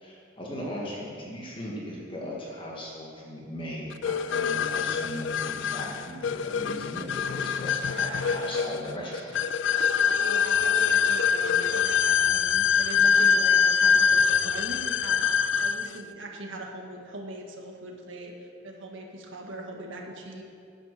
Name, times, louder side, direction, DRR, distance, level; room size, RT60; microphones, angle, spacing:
voice 1, 0.0-9.4, equal, 25° left, -4 dB, 2.0 m, -38 dB
sound 1, 4.0-16.0, left 7 dB, 65° left, 0.3 m, -24 dB
voice 2, 7.9-8.7 10.1-20.4, right 1 dB, 70° right, 1 dB, 1.7 m, -41 dB
10.5 x 8.7 x 6.8 m, 2.4 s
head